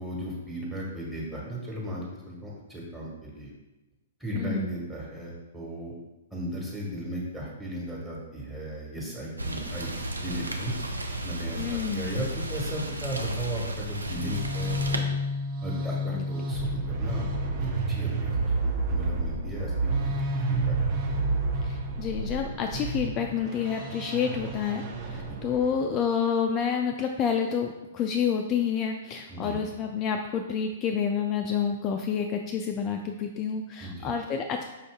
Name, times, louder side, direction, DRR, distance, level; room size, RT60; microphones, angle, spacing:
voice 1, 0.0-3.5 4.2-5.9 6.3-9.9 10.2-10.7 11.2-15.1 15.6-17.2 17.6-20.8 25.3-25.4 29.3-29.6 33.8-34.1, equal, 10° right, -5 dB, 1.4 m, -36 dB
voice 2, 4.3-4.7 11.6-12.1 16.2-16.3 21.6-34.6, left 7 dB, 30° left, 3 dB, 0.3 m, -29 dB
Rain, 9.4-15.0, right 1 dB, 90° right, 0.5 m, -33 dB
sound 1, 14.0-25.8, right 2 dB, 40° right, 0.7 m, -30 dB
5.6 x 2.6 x 3.5 m, 1.0 s
figure-of-eight pair, 115°, 0 cm